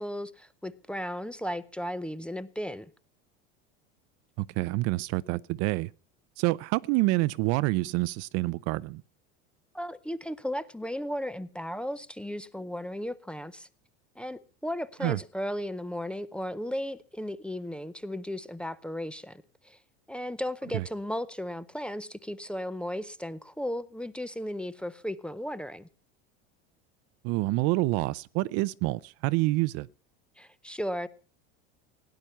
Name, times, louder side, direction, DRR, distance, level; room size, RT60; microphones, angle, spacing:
voice 1, 0.0-2.9 9.7-13.7 14.2-19.8 20.1-25.9 30.4-31.1, equal, 5° left, 0.6 m, -35 dB
voice 2, 4.4-5.9 6.4-9.0 15.0-15.2 20.7-20.8 27.2-29.9, right 20 dB, 55° right, 0.6 m, -27 dB
17.0 x 10.5 x 5.6 m
supercardioid pair, 140°, 31 cm